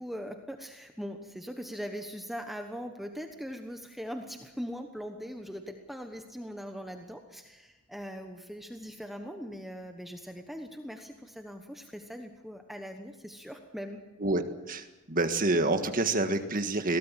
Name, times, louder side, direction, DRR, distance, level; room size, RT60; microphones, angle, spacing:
voice 1, 0.0-14.0, equal, ahead, 4 dB, 1.1 m, -41 dB
voice 2, 14.2-17.0, right 2 dB, 40° right, 7 dB, 1.7 m, -28 dB
22.5 x 17.5 x 7.6 m, 1.1 s
head